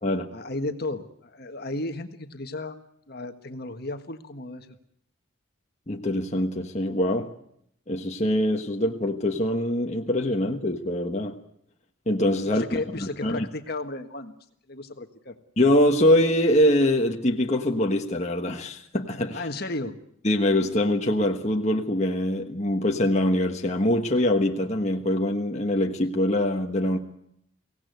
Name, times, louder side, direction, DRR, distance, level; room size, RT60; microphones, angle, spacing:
voice 1, 0.3-4.7 12.4-14.4 14.7-15.4 19.3-20.0, left 2 dB, 50° left, 1.6 m, -34 dB
voice 2, 5.9-7.3 7.9-11.4 12.1-12.6 13.0-13.5 15.6-19.4 20.2-27.0, left 1 dB, 35° left, 1.5 m, -23 dB
24.0 x 17.5 x 9.4 m
head